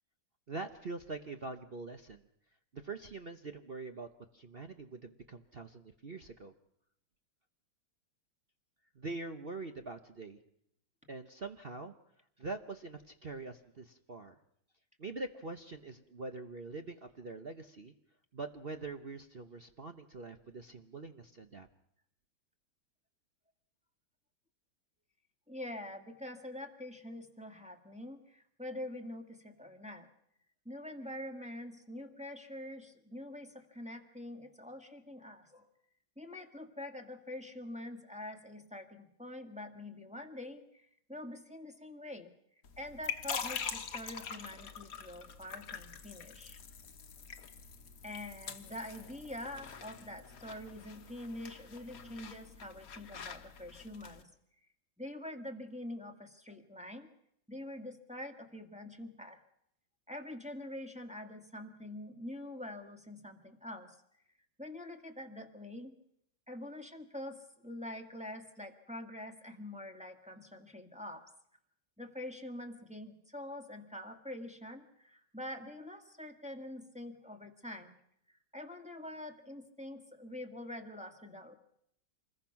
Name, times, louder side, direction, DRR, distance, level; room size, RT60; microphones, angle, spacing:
voice 1, 0.5-2.2 2.7-4.1 4.3-6.5 8.9-10.4 11.1-11.9 12.4-14.3 15.0-17.9 18.3-21.7, right 3 dB, 45° right, 7 dB, 0.8 m, -44 dB
voice 2, 25.5-30.1 30.6-35.7 36.2-42.3 42.8-46.6 48.0-54.3 55.0-57.1 57.5-59.4 60.1-64.0 64.6-65.9 66.5-71.2 72.0-77.9 78.5-81.6, left 1 dB, 5° right, 3 dB, 1.7 m, -45 dB
sound 1, 42.6-54.2, left 6 dB, 50° left, 1.5 m, -44 dB
27.0 x 21.0 x 5.9 m, 0.74 s
omnidirectional pair, 2.2 m